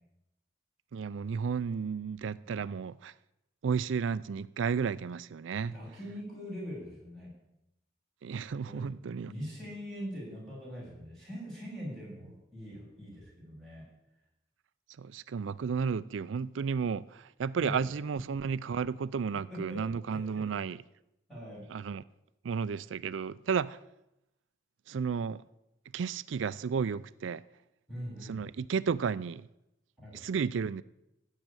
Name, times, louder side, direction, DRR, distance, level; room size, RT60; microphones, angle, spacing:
voice 1, 0.9-3.1 3.6-5.8 8.2-9.3 15.0-20.8 21.7-22.0 22.4-23.8 24.9-25.4 25.9-27.4 28.2-29.5 30.1-30.8, right 6 dB, 85° right, 0.4 m, -33 dB
voice 2, 5.6-7.3 8.6-8.9 9.2-13.8 17.5-17.9 19.5-19.8 20.1-20.4 21.3-21.7 27.9-28.5 30.0-30.2, equal, 5° left, 7.2 m, -42 dB
15.5 x 6.6 x 8.9 m
head